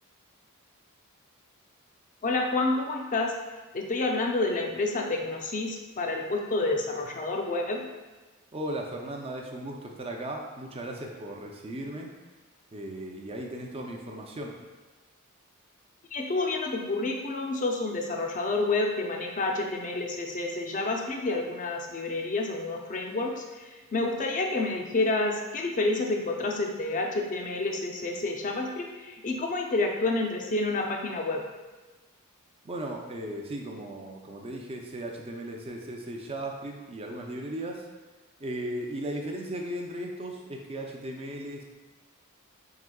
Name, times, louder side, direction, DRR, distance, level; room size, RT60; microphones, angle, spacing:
voice 1, 2.2-3.4 3.7-7.9 16.1-31.4, left 2 dB, 35° left, 1 dB, 0.5 m, -29 dB
voice 2, 8.5-12.1 12.7-14.5 32.6-37.9 38.4-41.6, right 1 dB, 25° right, 1 dB, 0.5 m, -36 dB
4.8 x 3.5 x 2.3 m, 1.2 s
head